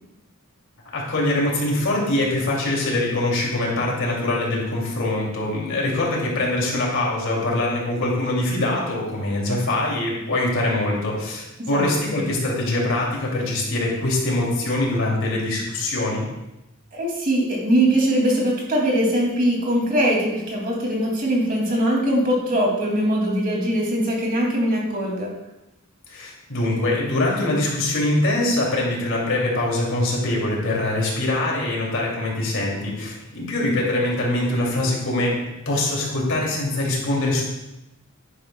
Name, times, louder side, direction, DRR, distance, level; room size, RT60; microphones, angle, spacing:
voice 1, 0.9-16.3 26.1-37.4, left 2 dB, 65° left, -3 dB, 2.8 m, -23 dB
voice 2, 11.6-12.2 16.9-25.3, right 1 dB, 40° right, -2 dB, 2.6 m, -21 dB
10.5 x 10.0 x 2.3 m, 0.94 s
head